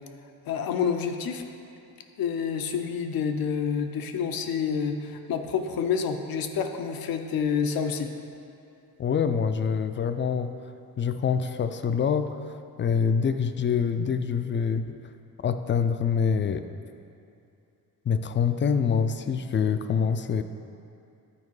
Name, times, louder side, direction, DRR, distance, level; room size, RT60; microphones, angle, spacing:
voice 1, 0.5-1.4 2.2-8.1, left 6 dB, 80° left, 6 dB, 0.7 m, -28 dB
voice 2, 9.0-10.5 11.0-15.0 15.4-16.7 18.1-20.4, left 6 dB, 35° left, 9 dB, 0.4 m, -25 dB
9.9 x 4.6 x 4.7 m, 2.6 s
cardioid pair, 105°, 35 cm